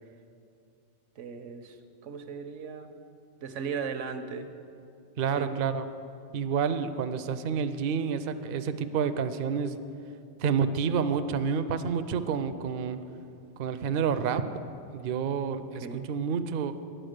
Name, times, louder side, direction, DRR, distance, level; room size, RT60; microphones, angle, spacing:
voice 1, 1.2-1.8 2.0-2.9 3.4-4.5 5.2-5.6 15.6-16.1, right 6 dB, 85° right, 8 dB, 1.1 m, -37 dB
voice 2, 5.2-5.9 6.3-9.8 10.4-13.0 13.6-14.4 14.9-16.7, right 6 dB, 60° right, 10 dB, 0.6 m, -29 dB
10.5 x 8.9 x 6.5 m, 2.6 s
omnidirectional pair, 1.2 m